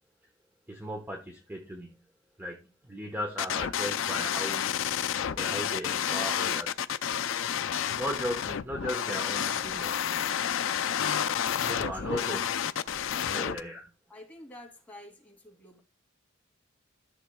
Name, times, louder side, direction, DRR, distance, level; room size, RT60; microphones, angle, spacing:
voice 1, 0.7-2.0 2.4-4.8 5.3-6.8 7.9-9.9 11.6-12.4 13.3-13.8, equal, 10° right, 1.0 m, -36 dB
sound 1, 3.4-13.6, left 9 dB, 65° left, 0.4 m, -30 dB
voice 2, 11.9-12.4 13.3-13.7 14.1-15.8, left 1 dB, 5° left, 2.5 m, -48 dB
13.5 x 6.8 x 2.3 m
head